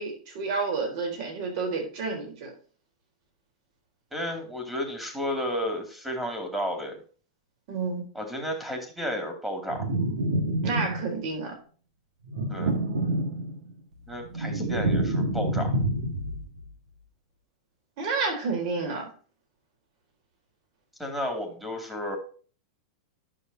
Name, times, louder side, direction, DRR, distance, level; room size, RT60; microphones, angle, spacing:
voice 1, 0.0-2.5 7.7-8.1 10.6-11.5 18.0-19.1, right 4 dB, 50° right, 2 dB, 3.9 m, -30 dB
voice 2, 4.1-7.0 8.1-9.9 12.5-12.7 14.1-15.8 21.0-22.2, equal, 5° right, 3 dB, 2.5 m, -32 dB
sound 1, 9.7-11.3 12.2-13.7 14.1-16.5, right 1 dB, 90° right, 2.1 m, -27 dB
11.0 x 6.5 x 2.8 m, 0.41 s
supercardioid pair, 140°, 3 cm